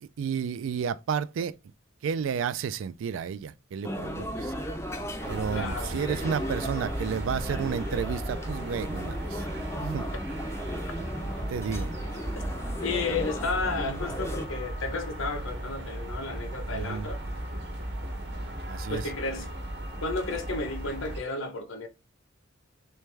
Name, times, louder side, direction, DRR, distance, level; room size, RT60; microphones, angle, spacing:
voice 1, 0.0-1.6 2.0-4.5 5.3-9.4 9.8-10.1 11.5-11.9 16.7-17.1 18.7-19.0, right 7 dB, 70° right, 0.3 m, -32 dB
sound 1, 3.8-14.4, equal, 15° left, 0.4 m, -36 dB
sound 2, 5.2-21.2, right 1 dB, 50° right, 1.0 m, -36 dB
voice 2, 5.5-6.0 12.8-17.2 18.9-19.5 20.0-21.9, left 3 dB, 75° left, 0.7 m, -32 dB
3.3 x 3.3 x 3.2 m
head